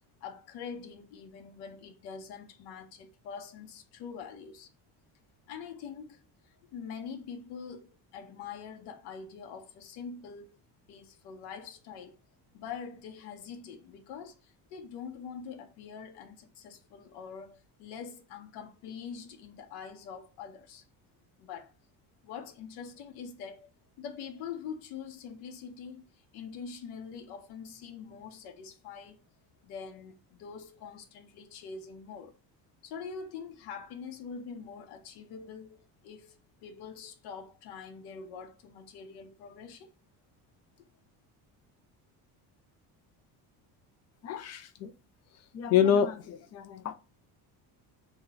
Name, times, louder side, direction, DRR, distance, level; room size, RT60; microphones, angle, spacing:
voice 1, 0.2-4.7 5.5-10.6 10.9-12.2 12.5-20.8 21.4-21.7 22.2-23.7 24.0-29.2 29.6-32.3 32.8-39.9 40.8-40.9, left 6 dB, 75° left, 0.9 m, -44 dB
voice 2, 44.2-44.9 45.5-46.9, left 8 dB, 40° left, 0.4 m, -27 dB
2.9 x 2.8 x 3.9 m
cardioid pair, 175°, 40 cm